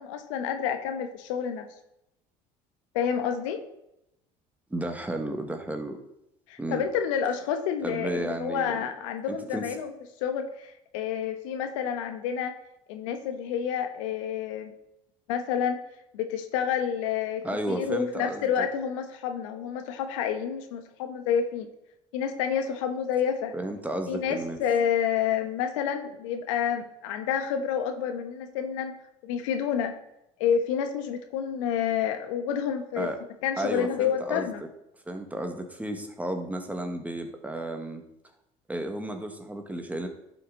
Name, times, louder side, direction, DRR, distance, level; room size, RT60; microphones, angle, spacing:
voice 1, 0.0-1.7 2.9-3.6 6.5-9.9 10.2-12.5 12.9-14.7 15.3-15.8 16.1-21.7 22.1-23.5 24.1-29.0 29.2-29.9 30.4-33.1 33.4-34.6, left 8 dB, 85° left, 7 dB, 1.2 m, -29 dB
voice 2, 4.7-6.0 6.6-6.8 7.8-8.9 9.3-9.7 17.4-18.7 23.5-24.6 33.0-33.2 33.6-34.5 35.1-38.0 38.7-40.1, right 1 dB, 10° right, 5 dB, 1.7 m, -33 dB
11.0 x 5.9 x 4.0 m, 0.83 s
supercardioid pair, 85°, 16 cm